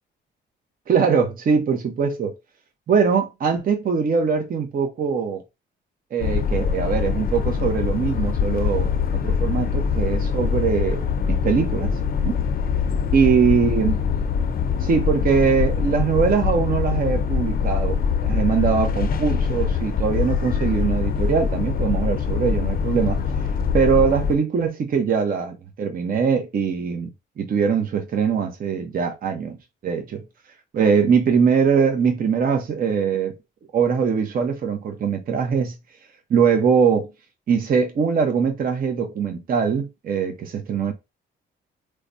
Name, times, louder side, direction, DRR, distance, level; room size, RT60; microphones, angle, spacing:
voice 1, 0.9-2.3 2.9-5.4 6.1-11.9 12.2-12.4 13.1-13.9 14.8-23.2 23.7-27.1 27.4-29.6 29.8-30.2 30.7-33.4 33.7-35.7 36.3-37.1 37.5-40.9, right 6 dB, 45° right, 0.7 m, -22 dB
sound 1, 6.2-24.3, left 6 dB, 50° left, 0.6 m, -23 dB
4.7 x 2.1 x 2.7 m
cardioid pair, 90°, 20 cm